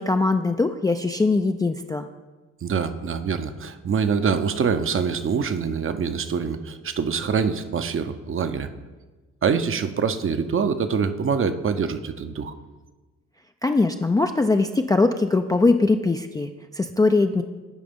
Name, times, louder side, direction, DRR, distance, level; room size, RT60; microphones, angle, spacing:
voice 1, 0.0-2.1 13.6-17.4, left 3 dB, 10° left, 6 dB, 0.3 m, -21 dB
voice 2, 2.6-8.7 9.4-12.5, right 6 dB, 35° right, 10 dB, 0.6 m, -25 dB
11.5 x 5.0 x 3.5 m, 1.3 s
hypercardioid pair, 50°, 36 cm